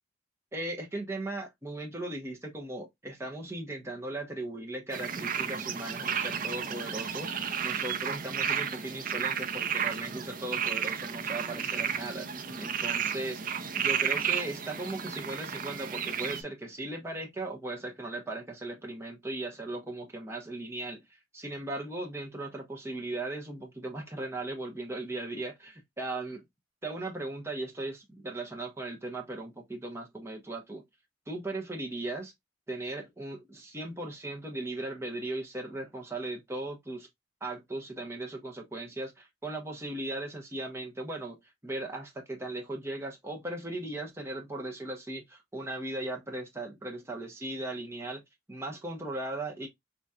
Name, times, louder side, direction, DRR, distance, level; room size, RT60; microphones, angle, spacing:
voice 1, 0.5-12.3 12.6-13.4 13.7-26.4 26.8-30.8 31.3-32.3 32.7-37.1 37.4-48.2 48.5-49.7, right 2 dB, 15° right, 1.0 m, -38 dB
sound 1, 4.9-16.4, right 8 dB, 50° right, 0.6 m, -32 dB
4.1 x 3.0 x 2.3 m
head